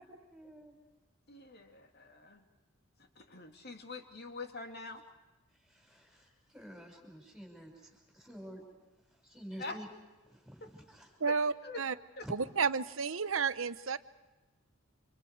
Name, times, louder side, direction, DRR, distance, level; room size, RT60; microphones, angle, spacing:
voice 1, 0.3-0.8 5.6-8.7 9.2-9.9 10.3-11.1 12.2-12.3, equal, ahead, 2 dB, 5.6 m, -49 dB
voice 2, 1.3-2.4 3.2-5.0 9.6-9.8 10.6-10.7 11.2-11.3 11.6-11.8 12.2-12.3, left 3 dB, 50° left, 4 dB, 2.6 m, -44 dB
voice 3, 11.2-12.0 12.3-14.0, right 5 dB, 75° right, 13 dB, 0.9 m, -31 dB
30.0 x 26.5 x 4.8 m, 1.1 s
head